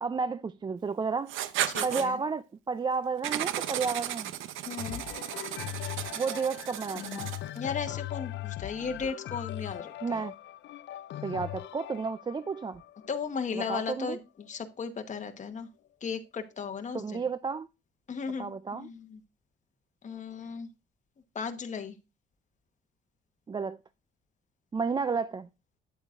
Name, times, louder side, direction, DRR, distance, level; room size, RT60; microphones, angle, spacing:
voice 1, 0.0-1.3 1.8-4.3 6.1-7.3 10.0-10.3 11.2-12.8 13.5-14.2 16.9-17.7 18.4-18.9 23.5-23.8 24.7-25.5, right 5 dB, 20° right, 0.3 m, -32 dB
Writing, 1.3-2.1 3.2-7.6, right 12 dB, 85° right, 0.6 m, -34 dB
voice 2, 1.7-2.2 4.6-5.0 7.5-10.2 13.1-15.7 16.0-17.2 18.1-19.2 20.0-20.7 21.3-22.0, left 5 dB, 40° left, 1.1 m, -36 dB
sound 1, 4.8-14.6 15.2-15.3, left 15 dB, 65° left, 0.4 m, -40 dB
9.2 x 8.0 x 2.5 m
cardioid pair, 90°, 20 cm